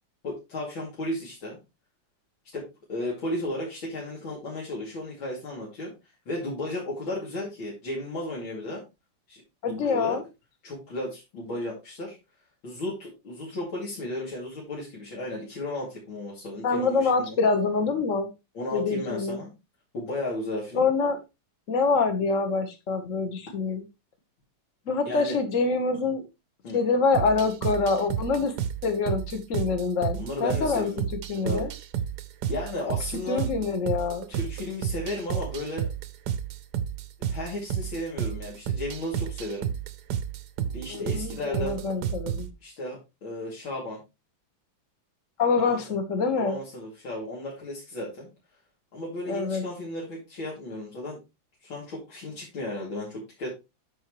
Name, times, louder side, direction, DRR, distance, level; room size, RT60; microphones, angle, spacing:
voice 1, 0.2-1.6 2.5-2.6 2.9-5.9 6.3-8.8 9.3-10.2 10.6-12.2 12.6-17.4 18.5-19.5 19.9-20.8 25.0-25.4 26.6-26.8 30.1-31.0 31.3-31.6 32.5-33.4 34.3-35.9 37.2-39.7 40.7-41.8 42.6-44.0 45.7-45.8 46.4-48.3 48.9-51.2 51.6-53.5, left 1 dB, 85° left, -5 dB, 3.4 m, -34 dB
voice 2, 9.6-10.2 16.6-18.3 18.7-19.4 20.7-21.2 21.7-23.8 24.9-26.2 26.7-28.5 28.8-30.9 31.3-31.7 33.3-34.3 40.9-42.5 45.4-46.5 49.3-49.6, left 4 dB, 40° left, 7 dB, 1.6 m, -25 dB
sound 1, 27.1-42.5, right 9 dB, 65° right, 1.1 m, -32 dB
13.0 x 4.6 x 3.1 m, 0.25 s
omnidirectional pair, 2.1 m